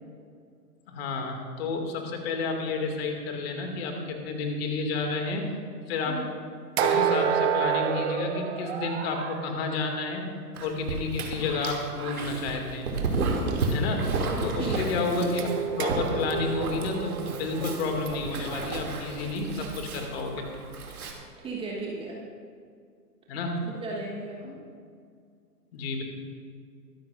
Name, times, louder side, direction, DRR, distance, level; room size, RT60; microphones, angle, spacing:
voice 1, 0.9-5.5 5.9-6.2 6.8-10.3 10.6-12.9 13.7-14.1 14.4-20.4 23.3-23.6 25.7-26.0, left 3 dB, 40° left, 3 dB, 2.3 m, -31 dB
sound 1, 6.8-9.5 15.4-19.4, right 8 dB, 40° right, 1.1 m, -29 dB
Dog, 10.5-21.1, right 3 dB, 60° right, 2.6 m, -32 dB
voice 2, 14.6-15.5 21.4-22.2 23.6-24.6, right 3 dB, 10° right, -3 dB, 1.3 m, -36 dB
23.0 x 13.0 x 2.5 m, 2.2 s
figure-of-eight pair, 125°, 49 cm